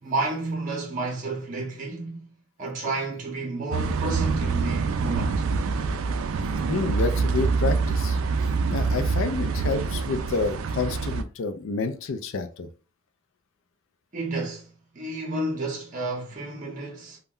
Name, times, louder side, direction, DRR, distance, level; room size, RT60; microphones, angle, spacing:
voice 1, 0.0-2.3 2.6-5.5 14.1-14.7 14.9-17.2, right 2 dB, 40° right, 0.7 m, -31 dB
sound 1, 3.7-11.2, right 4 dB, 70° right, 0.3 m, -26 dB
voice 2, 6.7-8.2 8.7-12.7, left 4 dB, 65° left, 0.4 m, -29 dB
2.2 x 2.1 x 3.6 m
head